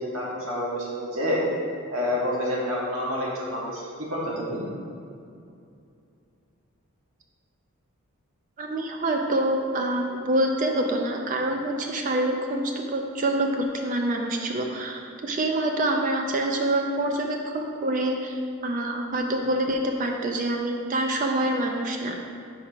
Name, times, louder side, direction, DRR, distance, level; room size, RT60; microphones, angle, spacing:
voice 1, 0.0-1.4 1.9-3.8 4.1-4.6, left 1 dB, 80° right, -5 dB, 1.4 m, -28 dB
voice 2, 8.6-22.2, right 1 dB, 35° right, 2 dB, 0.3 m, -26 dB
4.8 x 4.7 x 4.4 m, 2.5 s
head